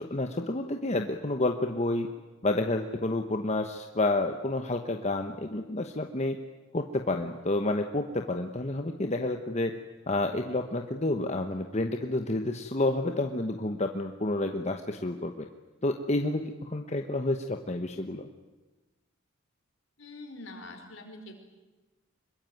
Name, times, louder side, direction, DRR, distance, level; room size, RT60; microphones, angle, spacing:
voice 1, 0.0-2.1 2.4-6.4 6.7-9.7 10.1-15.5 15.8-18.2, left 2 dB, 35° left, 5 dB, 1.2 m, -29 dB
voice 2, 20.0-21.3, left 2 dB, 65° left, 4 dB, 5.1 m, -44 dB
25.5 x 22.5 x 9.3 m, 1.2 s
head